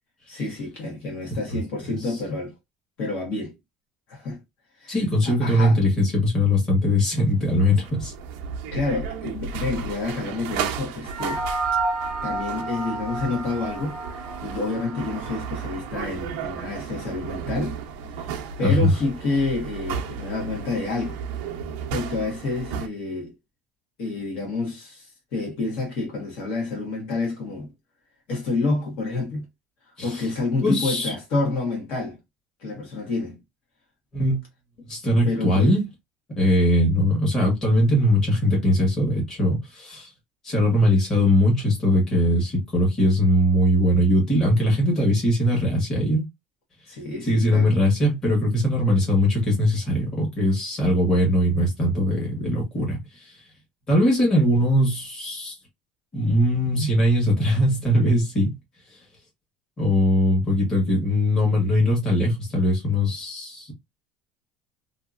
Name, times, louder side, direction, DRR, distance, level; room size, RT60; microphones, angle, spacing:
voice 1, 0.3-2.5 3.0-3.5 4.1-4.4 4.8-4.9 5.2-5.8 8.7-11.4 12.2-17.8 18.2-21.2 21.9-23.3 24.0-27.7 28.3-29.4 30.0-32.2 32.6-33.4 35.2-35.8 46.9-47.7, left 3 dB, 50° left, 1.3 m, -28 dB
voice 2, 4.9-8.1 17.4-17.5 18.6-18.9 30.0-30.2 30.6-31.1 34.1-34.4 34.9-35.8 36.3-40.1 40.4-46.2 47.3-53.4 53.9-55.5 56.1-58.5 59.8-63.7, left 1 dB, 20° left, 1.3 m, -21 dB
sound 1, 7.3-22.9, right 6 dB, 70° right, 0.5 m, -34 dB
sound 2, 11.0-15.7, right 3 dB, 10° right, 0.8 m, -30 dB
2.8 x 2.5 x 2.4 m
cardioid pair, 175°, 3 cm